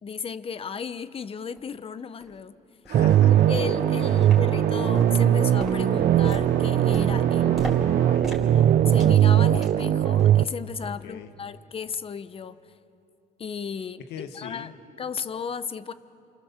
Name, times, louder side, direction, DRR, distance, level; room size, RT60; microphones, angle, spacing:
voice 1, 0.0-2.6 3.3-7.5 8.5-12.6 13.4-14.7 15.0-15.9, left 6 dB, 35° left, 13 dB, 1.0 m, -35 dB
sound 1, 1.6-1.7 2.2-2.3 2.8-3.0 3.5-3.8 4.2-4.7 4.9-9.9 10.2-10.5 10.8-11.0 11.5-11.6, equal, 5° right, 4.4 m, -38 dB
voice 2, 2.8-3.5 3.9-4.3 7.3-8.6 10.8-11.3 14.1-14.7, left 7 dB, 80° left, 7 dB, 2.0 m, -42 dB
sound 2, 2.9-10.4, right 11 dB, 55° right, 0.6 m, -20 dB
sound 3, 2.9-8.2, right 5 dB, 80° right, 3.5 m, -36 dB
29.0 x 27.5 x 7.4 m, 2.7 s
cardioid pair, 110°, 17 cm